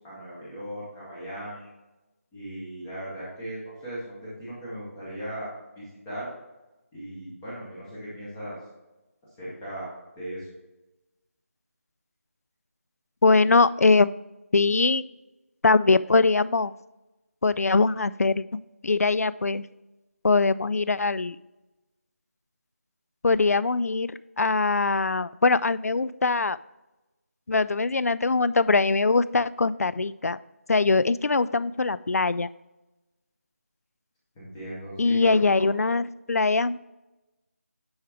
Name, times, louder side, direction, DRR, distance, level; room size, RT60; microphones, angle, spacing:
voice 1, 0.0-1.7 2.3-6.3 6.9-8.6 9.4-9.9 10.2-10.5 34.3-35.7, right 1 dB, 5° left, -9 dB, 0.6 m, -38 dB
voice 2, 13.2-14.1 14.5-15.0 15.6-16.7 17.4-18.4 18.8-19.6 20.2-21.4 23.2-26.6 27.5-30.4 30.7-32.5 35.0-36.8, left 3 dB, 85° left, 17 dB, 0.4 m, -22 dB
9.5 x 3.6 x 4.5 m, 1.0 s
figure-of-eight pair, 175°, 8 cm